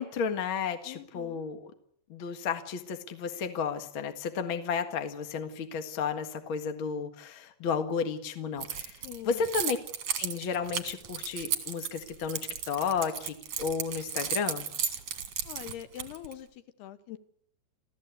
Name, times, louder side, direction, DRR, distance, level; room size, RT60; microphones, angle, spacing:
voice 1, 0.0-1.6 2.1-9.0 9.2-9.8 10.2-12.4 12.7-14.7, left 6 dB, 85° left, 7 dB, 1.1 m, -32 dB
voice 2, 0.8-1.4 9.0-9.5 15.5-17.2, left 11 dB, 70° left, 11 dB, 2.9 m, -43 dB
Keys jangling, 8.6-16.3, right 8 dB, 55° right, 1.8 m, -34 dB
27.5 x 15.0 x 8.3 m, 0.67 s
omnidirectional pair, 5.4 m